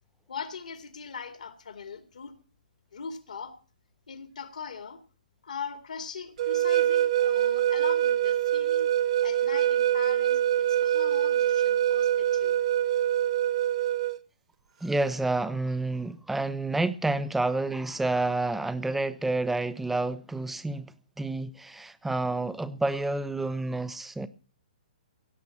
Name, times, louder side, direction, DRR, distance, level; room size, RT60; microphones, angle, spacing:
voice 1, 0.3-2.3 2.9-3.5 4.1-5.0 5.4-8.9 9.2-12.6, left 6 dB, 65° left, 2.3 m, -40 dB
sound 1, 6.4-14.2, right 11 dB, 50° right, 0.9 m, -24 dB
voice 2, 14.8-24.3, right 2 dB, 5° right, 0.8 m, -29 dB
16.5 x 7.9 x 7.3 m
figure-of-eight pair, 120°, 5 cm